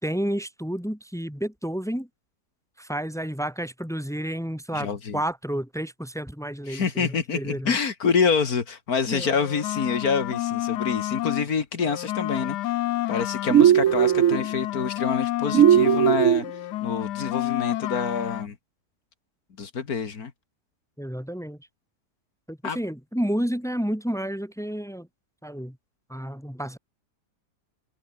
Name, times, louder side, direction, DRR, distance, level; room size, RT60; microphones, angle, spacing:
voice 1, 0.0-2.1 2.8-7.7 9.1-9.3 21.0-21.6 22.5-25.1 25.4-25.8 26.1-26.8, equal, ahead, 4.1 m, -30 dB
voice 2, 4.7-5.2 6.7-12.8 13.1-18.6 19.6-20.3 22.6-22.8, left 5 dB, 65° left, 2.3 m, -27 dB
sound 1, 9.1-11.5 11.8-16.2 16.4-18.5, left 15 dB, 85° left, 1.2 m, -30 dB
sound 2, 13.5-14.4 15.5-16.4, right 10 dB, 60° right, 1.1 m, -17 dB
omnidirectional pair, 1.7 m